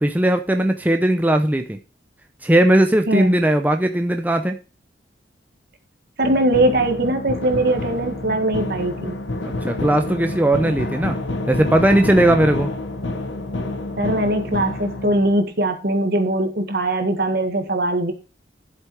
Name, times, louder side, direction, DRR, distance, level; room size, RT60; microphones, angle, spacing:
voice 1, 0.0-1.8 2.4-4.6 9.4-11.2 11.5-12.7, right 1 dB, 10° right, 5 dB, 0.7 m, -18 dB
sound 1, 6.2-15.4, left 2 dB, 80° left, 1.3 m, -28 dB
voice 2, 6.2-9.2 14.0-18.1, right 1 dB, 60° right, 6 dB, 2.0 m, -21 dB
11.5 x 7.4 x 4.7 m, 0.33 s
head